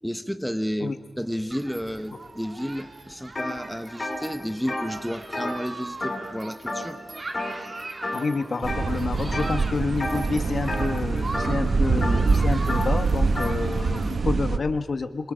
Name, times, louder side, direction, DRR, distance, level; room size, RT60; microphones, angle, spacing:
voice 1, 0.0-7.0, equal, ahead, 9 dB, 1.1 m, -31 dB
Human group actions, 1.5-14.2, right 2 dB, 40° right, 1.9 m, -41 dB
sound 1, 3.3-3.5 3.9-6.4 6.7-7.0 7.3-7.7 8.0-8.8 9.3-9.6 10.0-13.6, left 2 dB, 30° left, 4.8 m, -32 dB
voice 2, 8.1-15.3, left 4 dB, 60° left, 9 dB, 1.3 m, -29 dB
sound 2, 8.6-14.6, right 4 dB, 65° right, 1.1 m, -24 dB
26.5 x 26.0 x 5.1 m, 1.2 s
wide cardioid pair, 100°, 0 cm